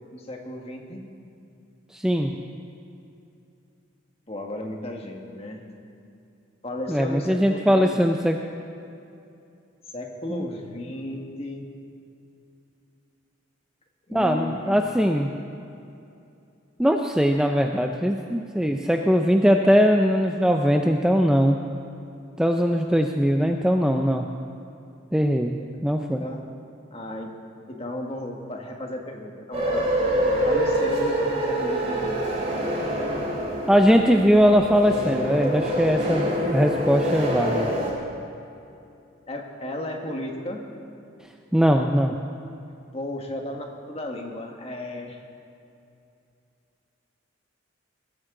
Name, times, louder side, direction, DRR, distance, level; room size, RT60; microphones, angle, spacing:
voice 1, 0.1-1.0 4.3-5.6 6.6-8.0 9.9-11.7 14.1-14.9 26.1-26.4 26.9-27.3 27.7-29.9 30.4-32.2 39.3-40.6 42.9-45.2, left 1 dB, 30° left, 1 dB, 1.6 m, -34 dB
voice 2, 1.9-2.3 6.9-8.4 10.3-10.4 14.1-15.3 16.8-21.6 22.4-24.2 25.1-26.2 33.7-37.7 41.5-42.1, equal, 5° right, 3 dB, 0.4 m, -20 dB
sound 1, 29.5-37.9, right 1 dB, 30° right, 3.8 m, -26 dB
22.0 x 13.5 x 3.8 m, 2.7 s
head